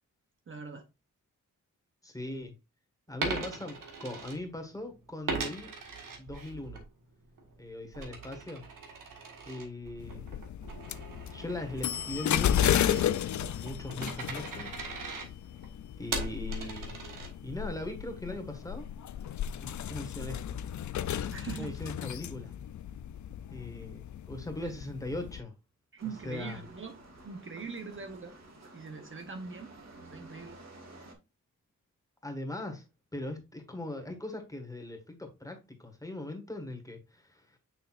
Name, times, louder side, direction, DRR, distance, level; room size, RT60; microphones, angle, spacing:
voice 1, 0.5-0.9 21.3-21.8 24.6-24.7 25.9-27.0 27.2-28.3 28.7-29.7 30.1-30.6, right 5 dB, 40° right, 0.8 m, -41 dB
voice 2, 2.0-2.5 3.1-5.7 6.2-6.8 7.6-8.7 9.5-10.4 11.3-13.1 13.6-14.7 16.0-17.0 17.4-18.8 19.6-20.6 21.6-22.5 23.5-25.5 26.2-26.6 32.2-32.8 33.1-37.6, left 1 dB, 10° left, 1.5 m, -40 dB
Coin (dropping), 3.1-4.8 5.3-6.8 7.2-17.7, right 4 dB, 85° right, 1.6 m, -40 dB
sound 1, 10.0-25.4, left 10 dB, 65° left, 0.5 m, -34 dB
sound 2, 26.0-31.1, right 2 dB, 55° right, 1.9 m, -52 dB
6.6 x 5.8 x 2.4 m
wide cardioid pair, 125°, 31 cm